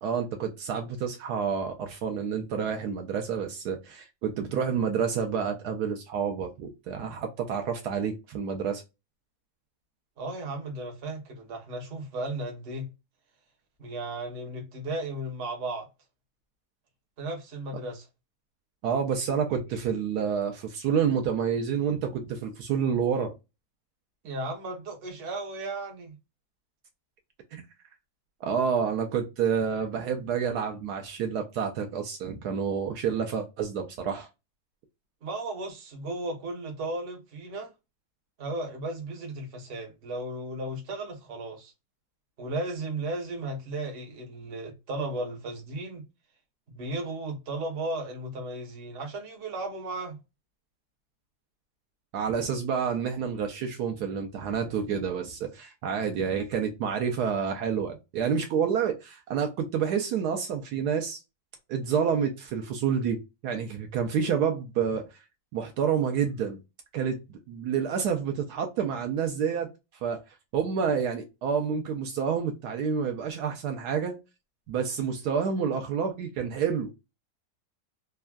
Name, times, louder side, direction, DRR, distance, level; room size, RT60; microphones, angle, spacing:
voice 1, 0.0-8.8 18.8-23.4 27.5-27.6 28.4-34.3 52.1-61.2 61.7-65.2 65.5-66.6 66.9-69.7 70.0-74.2 74.7-76.9, right 7 dB, 75° right, 1.1 m, -29 dB
voice 2, 10.2-12.9 13.8-15.9 17.2-18.1 24.2-26.1 35.2-37.7 38.4-41.7 42.4-46.0 46.7-50.2, right 2 dB, 45° right, 0.9 m, -35 dB
3.5 x 2.1 x 2.2 m
omnidirectional pair, 1.8 m